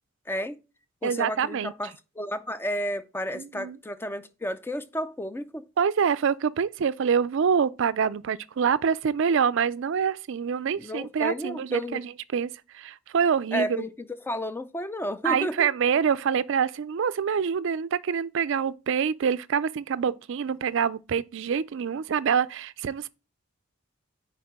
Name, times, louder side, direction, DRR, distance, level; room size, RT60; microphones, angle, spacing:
voice 1, 0.3-0.6 1.0-5.6 10.8-12.0 13.5-15.7, equal, 10° left, 0.4 m, -32 dB
voice 2, 1.0-1.7 3.3-3.8 5.8-13.8 15.2-23.1, right 7 dB, 60° right, 0.4 m, -26 dB
9.4 x 4.6 x 3.6 m
head